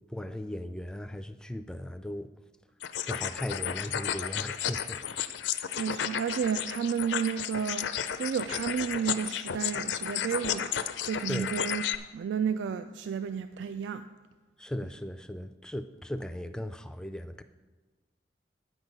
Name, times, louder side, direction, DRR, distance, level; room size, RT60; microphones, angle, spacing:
voice 1, 0.1-2.3 3.1-5.4 11.3-11.6 14.6-17.4, left 1 dB, 5° left, 9 dB, 0.3 m, -37 dB
sound 1, 2.8-11.9, left 9 dB, 80° left, 0.5 m, -33 dB
voice 2, 5.8-10.7 11.0-11.8 12.1-14.1, right 7 dB, 80° right, 11 dB, 0.3 m, -32 dB
9.6 x 8.1 x 5.3 m, 1.3 s
head